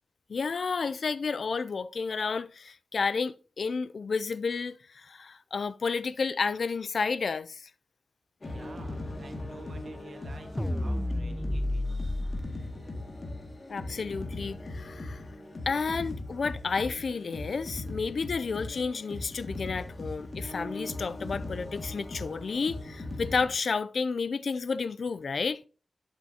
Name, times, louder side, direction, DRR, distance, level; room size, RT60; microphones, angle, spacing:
voice 1, 0.3-7.7 13.7-15.2 15.7-25.6, left 5 dB, 70° left, 0.3 m, -31 dB
sound 1, 8.4-23.5, left 2 dB, 40° left, 2.0 m, -39 dB
voice 2, 8.4-12.8, right 3 dB, 70° right, 1.6 m, -51 dB
sound 2, 10.6-12.4, left 1 dB, 10° left, 0.6 m, -30 dB
11.5 x 7.1 x 2.8 m
wide cardioid pair, 95°, 0 cm